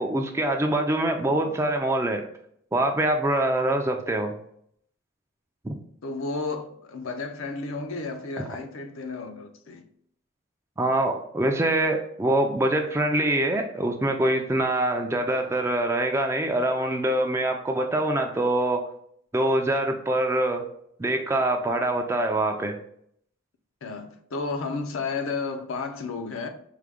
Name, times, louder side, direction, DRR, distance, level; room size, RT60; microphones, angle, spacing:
voice 1, 0.0-2.2 2.7-4.4 5.6-5.8 10.8-18.8 19.3-20.6 21.0-22.8, right 1 dB, 15° right, 0.3 m, -24 dB
voice 2, 6.0-9.8 23.8-26.5, left 4 dB, 70° left, 0.5 m, -32 dB
4.7 x 2.2 x 3.5 m
head